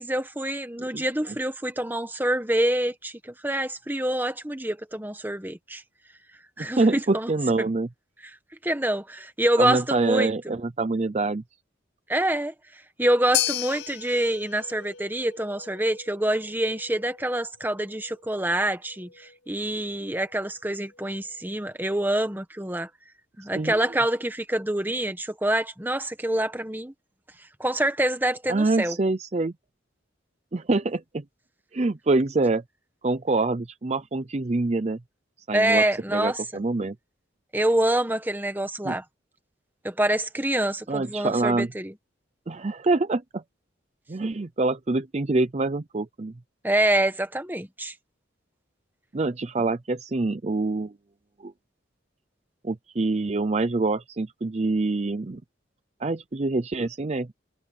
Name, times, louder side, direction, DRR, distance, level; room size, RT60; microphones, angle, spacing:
voice 1, 0.0-5.8 6.6-7.3 7.6-7.7 8.6-10.3 12.1-12.5 13.0-22.9 23.4-26.9 27.6-29.0 35.5-36.6 37.5-39.0 39.8-41.9 46.6-47.9, right 1 dB, 10° right, 1.4 m, -26 dB
voice 2, 6.6-7.9 9.6-11.4 23.5-23.8 28.5-29.5 30.5-31.2 31.7-32.6 33.0-35.0 35.5-35.9 36.1-37.0 38.8-39.0 40.9-41.7 42.5-43.4 44.1-46.3 49.1-50.9 51.4-51.5 52.6-55.4 56.0-57.3, right 3 dB, 35° right, 0.5 m, -25 dB
sound 1, 13.3-21.7, left 13 dB, 70° left, 6.2 m, -36 dB
head